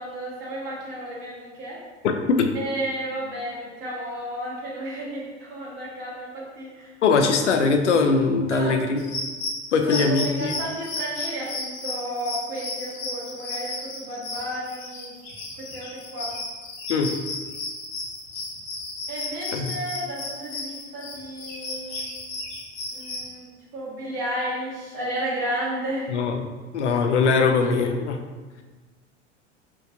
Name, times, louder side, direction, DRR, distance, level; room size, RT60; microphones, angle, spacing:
voice 1, 0.0-1.8 2.5-7.2 8.5-9.0 9.8-15.1 15.6-16.3 19.1-22.1 22.9-26.2, right 1 dB, 50° right, -6 dB, 1.4 m, -33 dB
voice 2, 2.0-2.5 7.0-9.0 9.7-10.5 16.9-17.1 19.5-19.7 26.1-26.4 26.7-28.2, left 4 dB, 75° left, 4 dB, 0.5 m, -21 dB
sound 1, 9.0-23.3, left 2 dB, 35° left, 0.9 m, -34 dB
4.5 x 2.5 x 2.5 m, 1.3 s
figure-of-eight pair, 75°, 35 cm